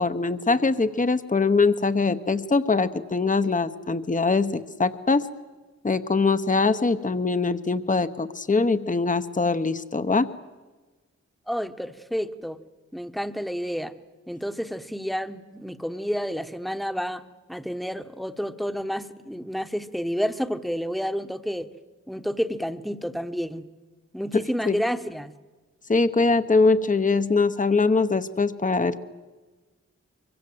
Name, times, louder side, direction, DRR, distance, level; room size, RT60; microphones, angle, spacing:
voice 1, 0.0-5.3 5.8-10.3 24.3-24.8 25.9-29.0, left 3 dB, 25° left, 11 dB, 1.0 m, -22 dB
voice 2, 11.5-12.6 12.9-13.9 14.3-21.7 22.1-23.6 24.1-25.3, equal, ahead, 9 dB, 1.2 m, -30 dB
24.5 x 23.5 x 7.9 m, 1.3 s
wide cardioid pair, 70°, 29 cm